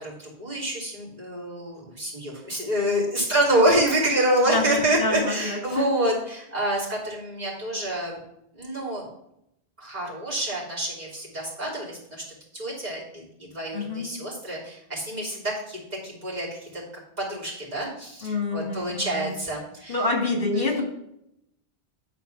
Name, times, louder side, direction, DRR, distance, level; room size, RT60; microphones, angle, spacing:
voice 1, 0.0-8.2 8.5-9.1 9.8-12.2 12.5-16.8 17.2-20.0 20.6-20.8, right 1 dB, 40° right, -6 dB, 3.2 m, -27 dB
voice 2, 4.5-5.9 13.7-14.1 18.2-19.3 19.9-20.8, left 3 dB, 60° left, 2 dB, 2.0 m, -27 dB
9.9 x 4.6 x 5.8 m, 0.80 s
omnidirectional pair, 1.1 m